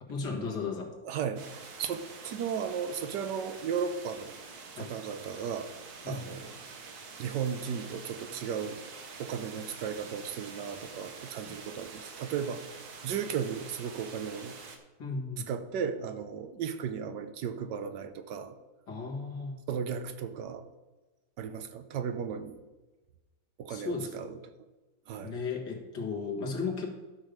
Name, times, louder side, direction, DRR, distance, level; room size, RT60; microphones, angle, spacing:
voice 1, 0.1-1.0 4.8-4.9 6.0-6.3 15.0-15.5 18.9-19.7 23.7-24.1 25.2-26.9, left 4 dB, 75° left, 0 dB, 2.3 m, -35 dB
voice 2, 1.0-4.4 4.8-5.7 6.1-6.5 7.2-8.8 9.2-12.6 13.0-14.6 15.5-18.5 19.7-20.7 21.4-22.6 23.6-24.3 25.1-25.4, right 7 dB, 90° right, 9 dB, 1.4 m, -35 dB
sound 1, 1.4-14.8, right 4 dB, 65° right, 1.6 m, -46 dB
11.5 x 6.4 x 5.1 m, 1.2 s
omnidirectional pair, 1.8 m